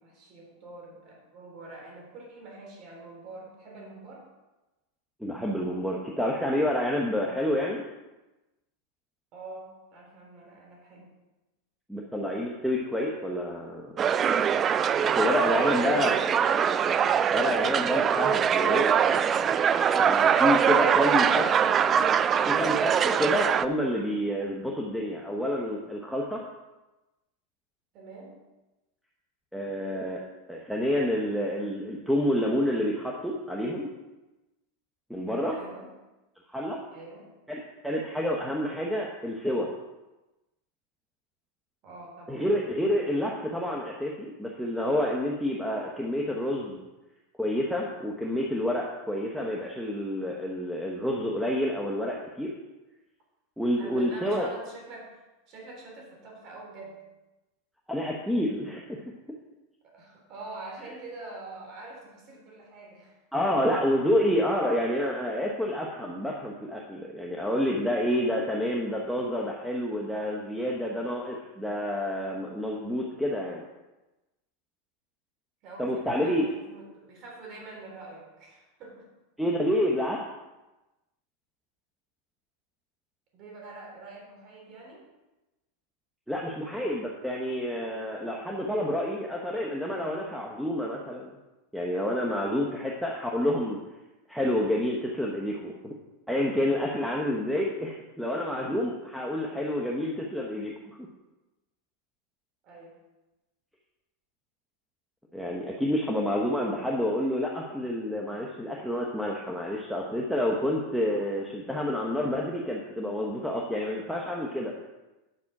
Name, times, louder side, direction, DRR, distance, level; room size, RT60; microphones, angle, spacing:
voice 1, 0.0-4.3 9.3-11.1 15.5-16.7 17.1-17.4 21.0-21.7 27.9-28.4 35.5-35.9 36.9-37.3 41.8-42.5 53.8-57.0 59.8-63.2 75.6-79.1 83.3-85.1 102.6-103.0, right 2 dB, 45° right, -1 dB, 4.0 m, -45 dB
voice 2, 5.2-7.8 11.9-13.9 15.0-16.1 17.3-18.9 19.9-21.5 22.4-26.4 29.5-30.2 30.5-33.9 35.1-35.6 36.5-36.8 37.5-39.7 42.3-46.8 47.4-52.5 53.6-54.5 57.9-59.0 63.3-73.6 75.8-76.5 79.4-80.2 86.3-91.3 91.7-93.8 94.3-96.0 96.3-100.7 105.3-114.7, left 1 dB, ahead, -2 dB, 1.0 m, -28 dB
sound 1, 14.0-23.7, right 8 dB, 25° right, 0.3 m, -23 dB
10.0 x 6.0 x 6.0 m, 1.1 s
supercardioid pair, 135°, 0 cm